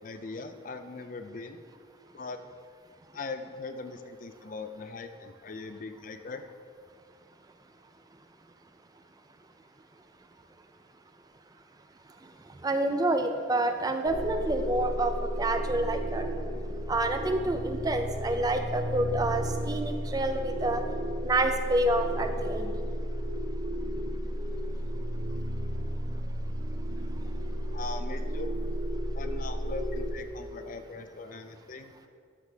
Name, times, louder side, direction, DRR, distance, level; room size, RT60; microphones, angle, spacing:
voice 1, 0.0-1.6 2.1-2.4 3.1-6.4 27.7-28.5 29.1-31.9, left 3 dB, 45° left, 8 dB, 0.5 m, -40 dB
voice 2, 12.6-16.3 16.9-20.8 21.2-22.7, right 2 dB, 20° right, 7 dB, 0.4 m, -28 dB
sound 1, 14.0-30.1, equal, 85° right, 1.6 m, -33 dB
12.0 x 6.7 x 3.4 m, 2.2 s
head